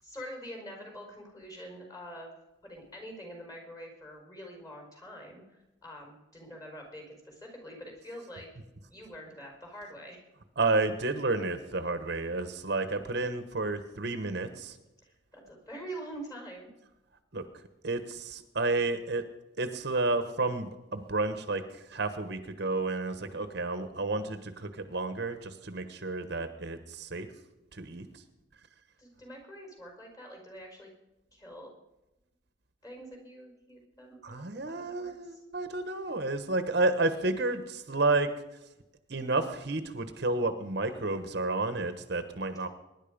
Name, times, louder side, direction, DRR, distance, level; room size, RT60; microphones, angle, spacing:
voice 1, 0.0-2.4 2.6-8.5 8.9-10.2 15.0-16.7 29.0-30.9 31.3-31.7 32.8-35.4, equal, 20° left, 2 dB, 4.9 m, -45 dB
voice 2, 10.6-14.8 17.3-17.4 17.8-19.2 19.6-27.3 27.7-28.1 34.2-38.3 39.1-42.7, right 2 dB, 55° right, 9 dB, 1.2 m, -31 dB
23.0 x 11.0 x 5.2 m, 0.98 s
head